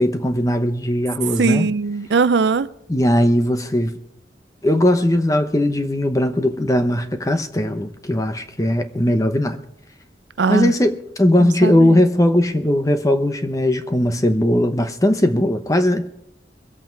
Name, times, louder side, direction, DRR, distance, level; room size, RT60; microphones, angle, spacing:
voice 1, 0.0-1.7 2.9-3.9 4.6-9.6 10.5-16.1, left 1 dB, 20° left, 0.9 m, -18 dB
voice 2, 1.4-2.7 10.4-10.7 11.4-12.0, right 4 dB, 85° right, 0.5 m, -20 dB
22.5 x 8.3 x 4.6 m
head